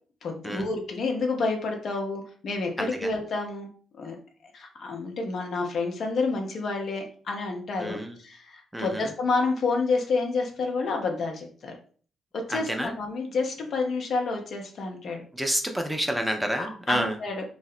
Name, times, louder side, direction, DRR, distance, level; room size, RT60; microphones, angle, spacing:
voice 1, 0.2-3.7 4.0-4.2 4.5-11.7 12.3-15.2 16.6-17.4, left 3 dB, 55° left, 2 dB, 0.5 m, -29 dB
voice 2, 2.8-3.1 7.8-8.2 8.7-9.1 12.5-12.9 15.3-17.2, equal, 5° right, 4 dB, 0.4 m, -29 dB
2.6 x 2.0 x 2.4 m, 0.43 s
figure-of-eight pair, 40°, 0 cm